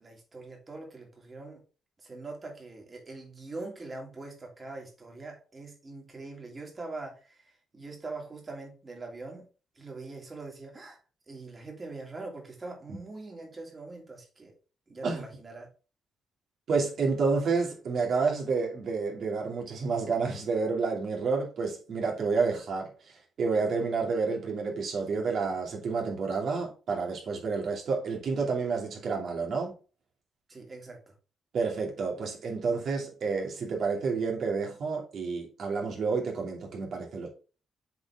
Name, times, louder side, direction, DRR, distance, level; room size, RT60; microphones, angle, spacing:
voice 1, 0.0-1.6 2.0-9.5 9.7-11.0 11.3-14.5 14.9-15.7 30.5-31.1, right 3 dB, 30° right, 2.7 m, -43 dB
voice 2, 16.7-22.9 23.4-29.7 31.5-37.3, right 4 dB, 60° right, 2.5 m, -29 dB
7.6 x 4.3 x 3.6 m
cardioid pair, 100°, 0 cm